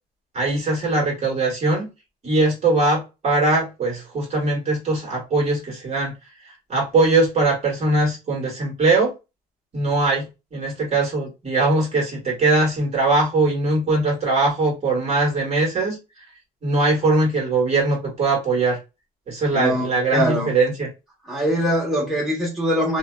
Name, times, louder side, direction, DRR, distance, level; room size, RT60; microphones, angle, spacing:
voice 1, 0.3-1.9 2.2-6.1 6.7-9.1 9.7-16.0 16.6-18.8 19.3-20.9, right 2 dB, 40° right, 1.4 m, -21 dB
voice 2, 19.5-20.5 21.2-23.0, equal, ahead, 1.2 m, -22 dB
2.6 x 2.1 x 2.2 m
cardioid pair, 110°, 17 cm